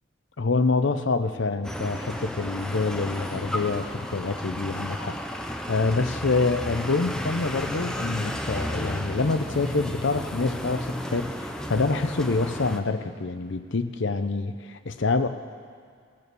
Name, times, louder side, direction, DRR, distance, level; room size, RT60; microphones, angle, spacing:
voice 1, 0.4-15.3, left 3 dB, 60° left, 8 dB, 0.7 m, -26 dB
sound 1, 1.6-12.8, equal, 5° left, 0.5 m, -33 dB
18.0 x 6.8 x 6.9 m, 2.2 s
head